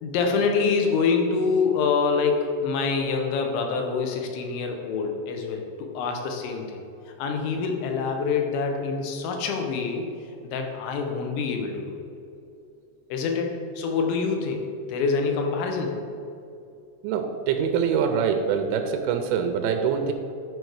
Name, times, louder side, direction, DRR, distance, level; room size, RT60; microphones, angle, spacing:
voice 1, 0.0-6.8 7.2-10.1 10.4-12.0 13.1-16.0, left 5 dB, 90° left, 3 dB, 3.2 m, -26 dB
voice 2, 17.0-20.1, right 7 dB, 90° right, 6 dB, 3.0 m, -24 dB
11.0 x 4.6 x 4.7 m, 2.5 s
omnidirectional pair, 5.3 m